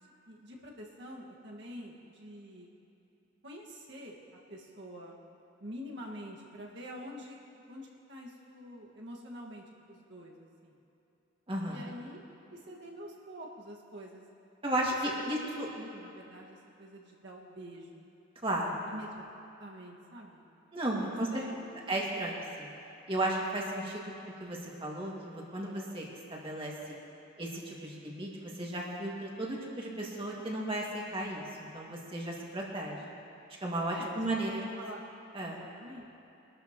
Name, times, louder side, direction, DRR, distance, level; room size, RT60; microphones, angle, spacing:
voice 1, 0.0-2.7 3.4-4.2 4.5-5.2 5.6-10.8 11.7-12.2 12.5-14.2 15.1-18.1 18.9-19.2 19.6-20.5 21.0-21.7 33.9-34.2 34.8-35.0 35.5-36.1, equal, 60° right, -2 dB, 1.8 m, -46 dB
voice 2, 11.5-11.8 14.6-15.7 18.4-18.9 20.7-21.4 21.9-22.7 23.1-24.1 24.4-27.0 27.4-33.0 33.6-34.6 35.3-35.6, right 1 dB, 25° right, -3 dB, 2.2 m, -34 dB
23.5 x 12.5 x 3.1 m, 2.9 s
head